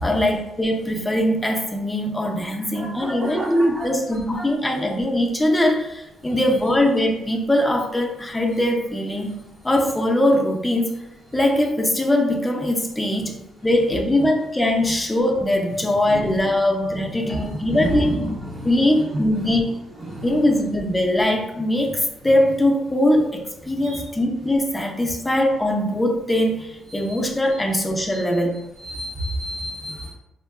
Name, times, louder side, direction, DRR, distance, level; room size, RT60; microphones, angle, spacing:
voice 1, 0.0-9.3 9.6-10.9 11.3-13.4 13.6-18.2 18.6-19.7 20.2-28.6, left 1 dB, 15° left, 2 dB, 0.5 m, -21 dB
voice 2, 2.7-3.9 16.1-16.3 17.3-17.4 17.7-18.7 19.1-19.2 20.0-20.3 23.8-24.0 28.8-30.1, right 1 dB, 45° right, -5 dB, 0.6 m, -29 dB
3.6 x 2.2 x 2.3 m, 0.90 s
cardioid pair, 90°, 0 cm